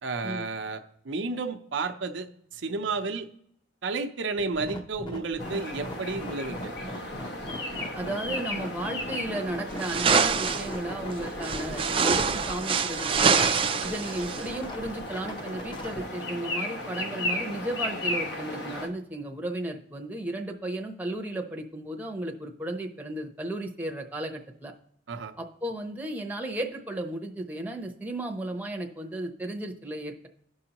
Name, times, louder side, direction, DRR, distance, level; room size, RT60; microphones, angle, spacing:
voice 1, 0.0-2.3 2.5-3.3 3.8-6.7 25.1-25.3, right 3 dB, 85° right, 7 dB, 0.7 m, -32 dB
sound 1, 4.4-16.0, equal, 25° left, 0.8 m, -40 dB
sound 2, 5.4-18.9, left 1 dB, 65° left, 1.2 m, -35 dB
voice 2, 8.0-13.5 13.8-24.7 25.4-30.3, right 1 dB, 10° right, 2 dB, 0.7 m, -34 dB
sound 3, 9.8-10.7 11.4-14.5, right 6 dB, 30° right, 0.4 m, -25 dB
15.0 x 5.5 x 2.9 m, 0.69 s
head